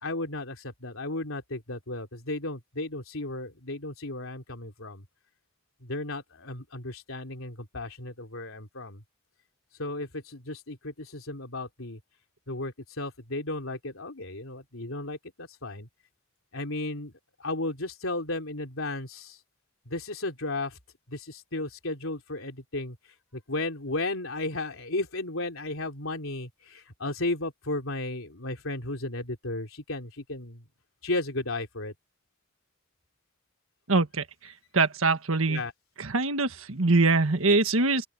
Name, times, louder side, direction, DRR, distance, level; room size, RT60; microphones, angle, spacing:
voice 1, 0.0-5.0 5.8-9.0 9.8-12.0 12.5-15.9 16.5-17.1 17.4-19.4 19.9-20.8 21.1-23.0 23.3-30.6 31.0-31.9 35.5-35.7, left 2 dB, 70° left, 3.7 m, -34 dB
voice 2, 33.9-34.2 34.7-35.6 36.0-38.0, right 3 dB, 75° right, 1.6 m, -23 dB
open air
head